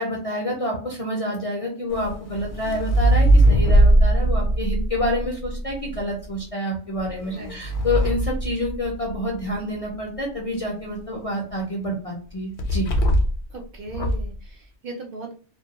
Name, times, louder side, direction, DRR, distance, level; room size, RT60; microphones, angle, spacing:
voice 1, 0.0-12.9, left 1 dB, 45° left, -1 dB, 0.5 m, -28 dB
sound 1, 1.9-6.0 7.0-9.3 12.6-13.5 13.9-14.3, right 1 dB, 70° left, 0.9 m, -20 dB
voice 2, 7.3-7.7 13.5-15.3, right 3 dB, 60° right, 1 dB, 0.7 m, -37 dB
2.2 x 2.2 x 2.8 m, 0.42 s
omnidirectional pair, 1.2 m